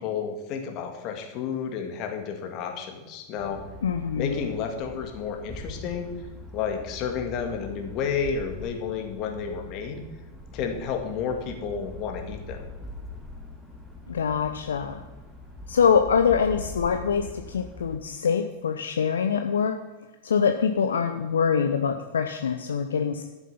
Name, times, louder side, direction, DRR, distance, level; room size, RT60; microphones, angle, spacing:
voice 1, 0.0-3.6 4.2-6.1 6.5-10.0 10.5-12.7, left 6 dB, 40° left, 4 dB, 1.9 m, -31 dB
sound 1, 3.4-18.0, left 2 dB, 5° right, 2.0 m, -42 dB
voice 2, 3.8-4.5 14.1-15.0 15.7-19.7 20.2-23.2, left 6 dB, 65° left, 6 dB, 0.7 m, -24 dB
12.0 x 7.2 x 5.8 m, 1.1 s
figure-of-eight pair, 90°, 0 cm